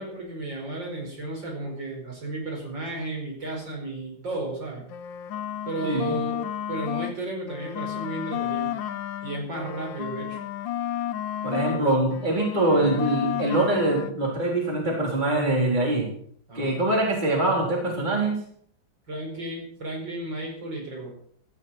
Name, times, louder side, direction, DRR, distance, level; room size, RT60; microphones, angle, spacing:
voice 1, 0.0-4.8 5.7-6.4 6.7-8.7 9.2-10.4 11.7-11.9 16.5-16.8 19.1-21.1, right 2 dB, 65° right, 0 dB, 5.7 m, -33 dB
sound 1, 4.8-7.2 7.5-11.8 12.1-14.1, left 11 dB, 75° left, 1.5 m, -32 dB
voice 2, 5.8-6.2 11.4-16.1 16.5-18.4, right 2 dB, 20° right, -2 dB, 4.0 m, -24 dB
17.5 x 14.0 x 4.4 m, 0.62 s
omnidirectional pair, 2.2 m